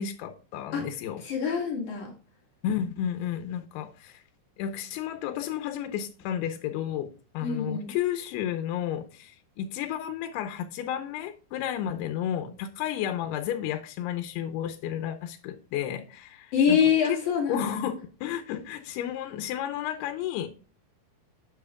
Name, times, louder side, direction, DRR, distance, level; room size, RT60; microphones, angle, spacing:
voice 1, 0.0-1.2 2.6-4.2 4.6-7.1 7.3-17.2 17.5-20.5, left 10 dB, 90° left, 2.7 m, -32 dB
voice 2, 1.2-2.1 7.4-7.9 16.5-17.8, left 7 dB, 55° left, 3.1 m, -25 dB
9.8 x 7.5 x 2.3 m
omnidirectional pair, 4.6 m